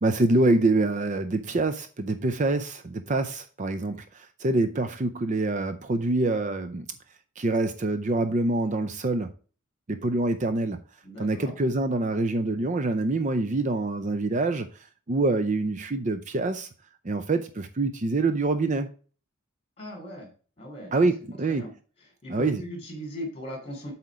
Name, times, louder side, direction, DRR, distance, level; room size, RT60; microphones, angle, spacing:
voice 1, 0.0-6.9 7.4-9.3 9.9-10.8 11.2-14.7 15.1-16.7 17.0-18.9 20.9-21.6 22.3-22.6, right 2 dB, 35° right, 0.5 m, -25 dB
voice 2, 11.0-11.5 19.8-20.3 20.6-21.1 21.5-21.7 22.2-23.9, equal, 25° left, 3.0 m, -38 dB
7.8 x 4.3 x 4.8 m
head